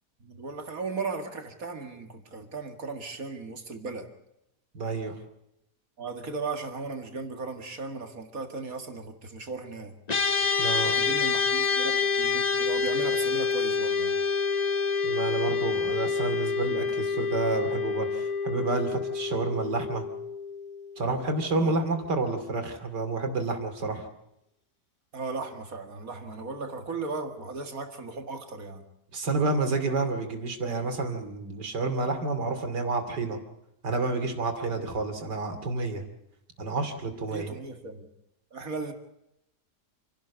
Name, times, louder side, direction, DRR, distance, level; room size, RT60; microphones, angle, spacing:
voice 1, 0.2-4.1 6.0-10.0 10.8-14.2 21.6-21.8 25.1-28.8 37.3-38.1 38.5-38.9, right 4 dB, 55° right, 6 dB, 2.4 m, -36 dB
voice 2, 4.7-5.2 10.6-10.9 15.0-20.0 21.0-24.1 29.1-33.4 33.8-36.0 36.6-37.5, right 3 dB, 85° right, 6 dB, 3.2 m, -29 dB
sound 1, 10.1-21.5, left 5 dB, 30° left, 1.0 m, -27 dB
28.0 x 12.0 x 8.3 m, 0.84 s
omnidirectional pair, 1.8 m